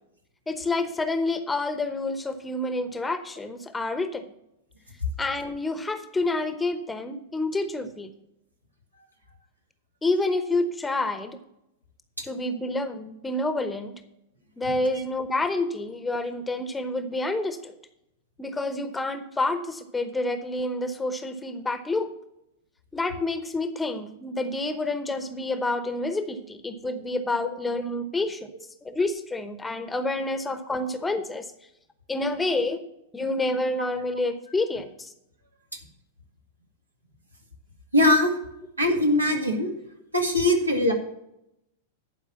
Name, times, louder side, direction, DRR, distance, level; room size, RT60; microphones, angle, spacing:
voice 1, 0.5-4.2 5.2-8.1 10.0-11.4 12.2-13.9 14.6-17.7 18.4-22.1 22.9-28.5 28.8-31.5 32.1-32.8 33.1-35.1, left 2 dB, 10° left, 9 dB, 0.9 m, -28 dB
voice 2, 37.9-38.3 38.8-39.7 40.1-40.9, left 1 dB, 85° right, 2 dB, 1.9 m, -21 dB
11.0 x 4.9 x 7.0 m, 0.83 s
figure-of-eight pair, 95°, 0 cm